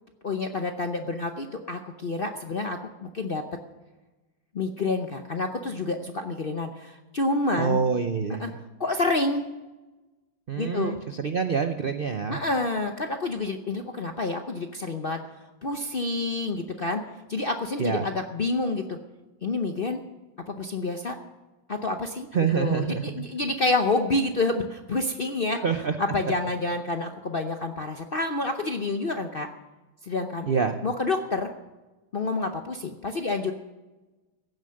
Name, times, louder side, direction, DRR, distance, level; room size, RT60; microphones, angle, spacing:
voice 1, 0.2-3.4 4.5-7.8 8.4-8.5 8.8-9.4 10.6-11.0 12.3-15.2 15.6-17.0 17.3-19.0 19.4-20.0 20.5-21.2 21.7-22.3 22.5-25.6 26.0-29.5 30.0-30.5 30.8-31.5 32.1-33.5, left 2 dB, 55° left, 5 dB, 0.6 m, -28 dB
voice 2, 7.6-8.6 10.5-12.4 17.8-18.1 22.3-23.3 25.5-26.0 30.5-30.8, right 6 dB, 85° right, 8 dB, 0.4 m, -26 dB
16.0 x 9.3 x 6.4 m, 1.1 s
omnidirectional pair, 2.0 m